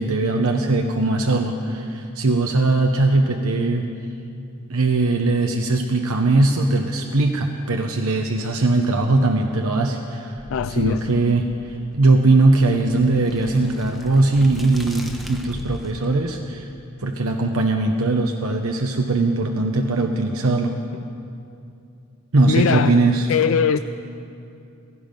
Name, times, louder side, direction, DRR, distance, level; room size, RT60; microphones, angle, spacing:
voice 1, 0.0-3.9 4.7-10.4 10.8-16.6 17.0-20.8 22.3-23.3, right 2 dB, 85° right, 3 dB, 0.9 m, -20 dB
sound 1, 10.3-16.1, equal, ahead, 0.9 m, -39 dB
voice 2, 10.5-11.0 19.6-19.7 20.0-20.1 22.5-23.8, left 7 dB, 65° left, 11 dB, 0.3 m, -22 dB
17.0 x 15.0 x 5.3 m, 2.6 s
head